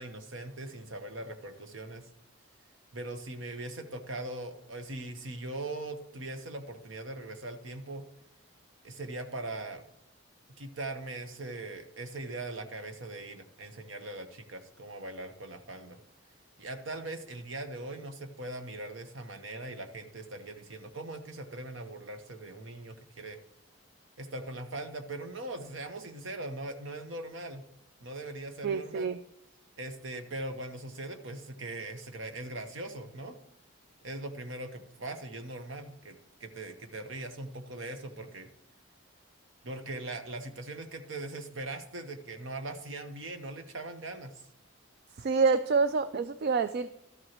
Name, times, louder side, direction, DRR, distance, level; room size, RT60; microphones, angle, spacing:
voice 1, 0.0-2.1 2.9-8.0 8.8-9.8 10.6-16.0 16.6-23.4 24.2-27.6 28.0-29.1 29.8-33.4 34.0-38.5 39.6-44.3, right 2 dB, 65° right, 7 dB, 1.0 m, -40 dB
voice 2, 28.6-29.2 45.2-46.9, right 4 dB, 50° right, 12 dB, 0.3 m, -27 dB
12.5 x 7.8 x 3.0 m, 0.84 s
head